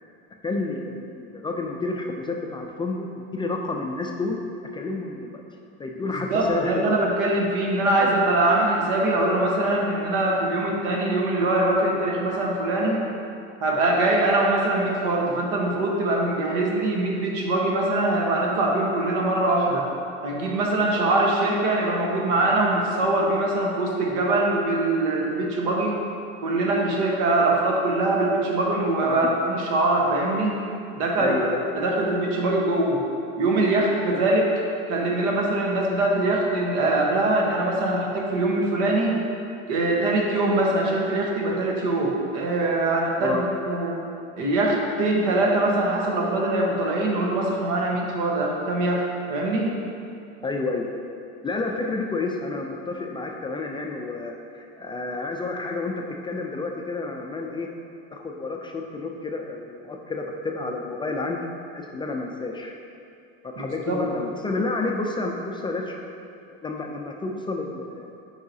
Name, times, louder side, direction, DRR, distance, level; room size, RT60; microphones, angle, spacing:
voice 1, 0.4-4.4 4.7-5.4 5.8-7.0 8.0-8.1 29.0-29.2 31.2-31.6 43.2-43.4 50.4-50.9 51.4-57.7 58.1-62.7 63.6-65.9 66.6-68.2, left 3 dB, 15° left, 1 dB, 0.3 m, -30 dB
voice 2, 6.1-13.0 13.6-19.9 20.2-26.0 26.4-30.6 31.0-31.4 31.7-33.0 33.4-34.6 34.9-39.2 39.7-44.0 44.4-49.7 63.6-64.0, right 2 dB, 75° right, -1 dB, 1.2 m, -23 dB
8.4 x 4.8 x 2.7 m, 2.6 s
supercardioid pair, 115°, 29 cm